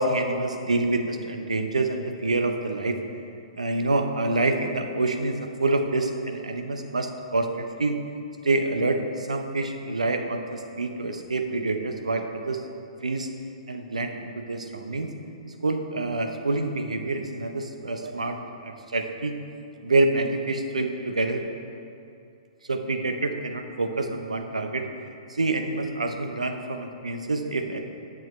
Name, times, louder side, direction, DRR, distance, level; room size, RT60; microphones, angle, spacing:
voice 1, 0.0-3.0 3.6-8.0 8.4-12.6 13.0-13.3 13.7-15.1 15.6-18.4 18.6-19.3 19.8-21.4 22.7-24.9 25.3-27.8, right 2 dB, 90° right, 5 dB, 0.7 m, -27 dB
10.5 x 7.1 x 3.2 m, 2.5 s
hypercardioid pair, 120°, 4 cm